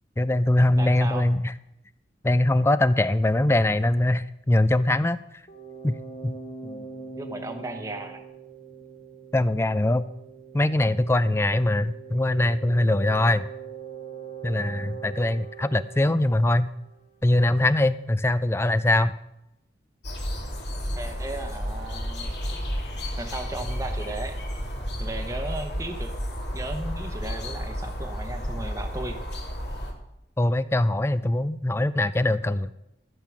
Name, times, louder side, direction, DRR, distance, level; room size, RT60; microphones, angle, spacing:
voice 1, 0.2-1.4 2.2-5.2 5.8-6.0 6.2-6.3 9.3-10.1 10.5-13.5 14.4-16.7 17.2-19.1 30.4-32.7, left 1 dB, 15° left, 15 dB, 0.3 m, -22 dB
voice 2, 0.8-1.3 6.6-8.2 21.0-22.3 23.2-24.4 25.0-26.1 26.5-29.2, right 2 dB, 15° right, 4 dB, 0.9 m, -36 dB
sound 1, 5.5-17.1, right 6 dB, 30° left, 1.2 m, -42 dB
sound 2, 20.0-29.9, equal, 65° left, 2.5 m, -32 dB
14.0 x 7.6 x 6.0 m, 0.86 s
head